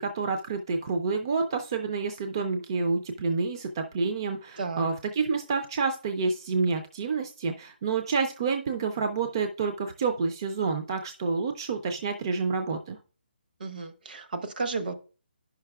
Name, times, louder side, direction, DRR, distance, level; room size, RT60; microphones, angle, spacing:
voice 1, 0.0-13.0, right 4 dB, 25° right, 0.4 m, -28 dB
voice 2, 13.6-14.9, right 4 dB, 55° right, 0.9 m, -33 dB
10.5 x 5.7 x 2.3 m
hypercardioid pair, 170°, 6 cm